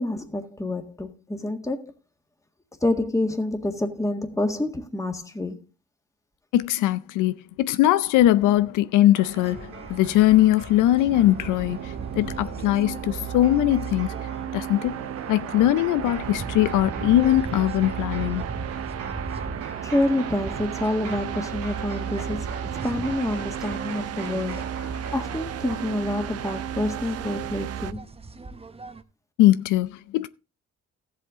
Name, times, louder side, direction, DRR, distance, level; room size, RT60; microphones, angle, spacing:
voice 1, 0.0-1.9 2.8-5.7 19.8-24.7 25.1-28.0, left 1 dB, 10° left, 1.8 m, -27 dB
voice 2, 6.5-14.2 14.5-15.0 15.3-18.4 29.4-30.3, left 14 dB, 90° left, 0.6 m, -21 dB
sound 1, 9.1-27.0, right 5 dB, 80° right, 2.6 m, -41 dB
sound 2, 9.2-29.0, right 3 dB, 20° right, 0.9 m, -40 dB
sound 3, 10.9-27.9, right 10 dB, 55° right, 0.6 m, -34 dB
14.0 x 7.8 x 3.7 m
cardioid pair, 90°, 30 cm